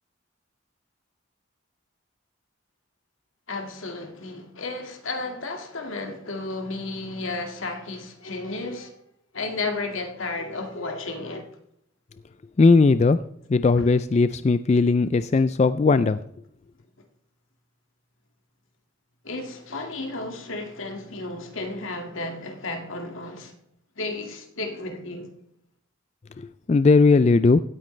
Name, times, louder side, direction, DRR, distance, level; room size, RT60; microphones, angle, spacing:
voice 1, 3.5-8.9 9.3-11.5 19.2-23.5 24.0-25.3, left 3 dB, 80° left, 2.0 m, -33 dB
voice 2, 12.6-13.2 13.5-16.2 26.7-27.6, left 3 dB, 35° left, 0.3 m, -18 dB
16.5 x 9.1 x 3.2 m
head